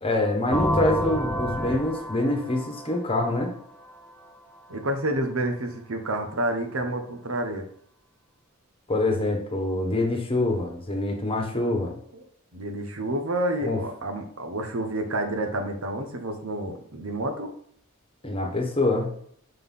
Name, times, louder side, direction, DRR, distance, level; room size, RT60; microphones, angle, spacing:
voice 1, 0.0-3.5 8.9-11.9 13.6-13.8 18.2-19.1, left 2 dB, 25° left, 2 dB, 1.3 m, -25 dB
sound 1, 0.5-4.2, equal, 5° left, 0.8 m, -29 dB
voice 2, 4.7-7.6 12.1-12.2 12.5-17.5, right 1 dB, 75° right, 5 dB, 1.1 m, -29 dB
5.7 x 3.9 x 5.5 m, 0.64 s
head